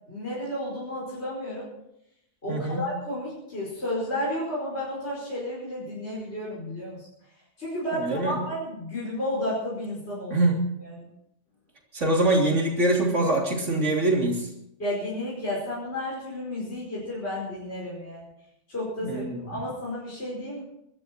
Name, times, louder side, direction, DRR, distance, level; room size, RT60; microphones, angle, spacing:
voice 1, 0.1-1.7 2.4-7.1 7.6-10.5 10.8-11.1 14.8-18.3 18.7-20.6, left 1 dB, 60° left, -6 dB, 5.5 m, -32 dB
voice 2, 2.5-2.9 8.0-8.4 10.3-10.6 11.9-14.5 19.0-19.6, right 2 dB, 80° right, 0 dB, 3.6 m, -24 dB
24.0 x 13.0 x 4.5 m, 0.80 s
omnidirectional pair, 1.2 m